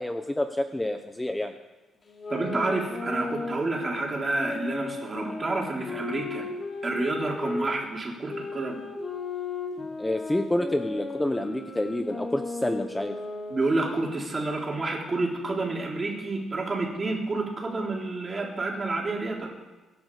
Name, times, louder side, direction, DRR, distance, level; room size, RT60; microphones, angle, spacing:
voice 1, 0.0-1.6 10.0-13.2, left 1 dB, 10° left, 7 dB, 0.8 m, -28 dB
sound 1, 2.1-7.7 8.3-13.9, left 3 dB, 35° left, 3.4 m, -36 dB
voice 2, 2.3-6.4 6.8-8.8 13.5-19.5, right 2 dB, 25° right, -1 dB, 3.7 m, -29 dB
23.5 x 10.5 x 4.9 m, 1.2 s
cardioid pair, 125°, 0 cm